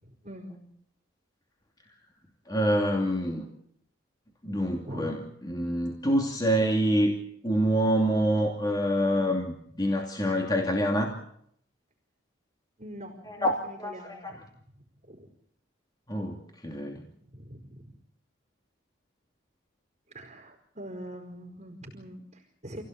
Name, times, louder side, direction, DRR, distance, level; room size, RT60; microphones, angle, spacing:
voice 1, 0.0-0.7 4.9-5.1 12.8-14.4 15.0-15.3 17.2-17.8 20.1-22.8, equal, 30° right, 1 dB, 4.9 m, -43 dB
voice 2, 2.5-3.5 4.4-7.2 7.4-11.1 13.3-14.3 16.1-17.1, equal, 20° left, 1 dB, 2.6 m, -26 dB
28.5 x 17.0 x 8.5 m, 0.70 s
head